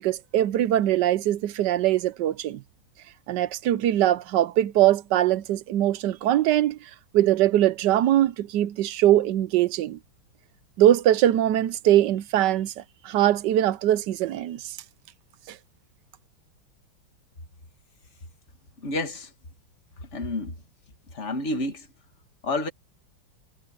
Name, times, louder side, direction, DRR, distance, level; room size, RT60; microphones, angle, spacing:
voice 1, 0.0-2.6 3.3-10.0 10.8-14.8 15.5-15.6, right 12 dB, 70° right, 1.1 m, -22 dB
voice 2, 18.8-19.3 20.0-20.6 21.1-21.9 22.4-22.7, left 2 dB, 35° left, 2.1 m, -29 dB
omnidirectional pair, 2.3 m